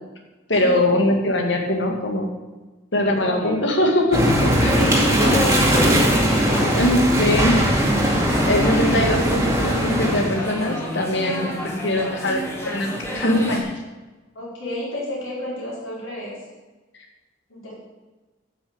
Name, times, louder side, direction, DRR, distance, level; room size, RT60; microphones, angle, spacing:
voice 1, 0.5-2.3 2.9-4.8 6.7-7.9 8.5-13.7, left 1 dB, 60° left, 2 dB, 2.2 m, -22 dB
voice 2, 3.1-3.7 4.6-6.6 14.3-16.3 17.5-17.7, left 1 dB, 75° left, -5 dB, 4.8 m, -29 dB
sound 1, 4.1-10.3, equal, 15° right, 2.2 m, -19 dB
sound 2, 6.1-13.6, equal, 15° left, 2.0 m, -31 dB
12.0 x 5.9 x 8.3 m, 1.2 s
head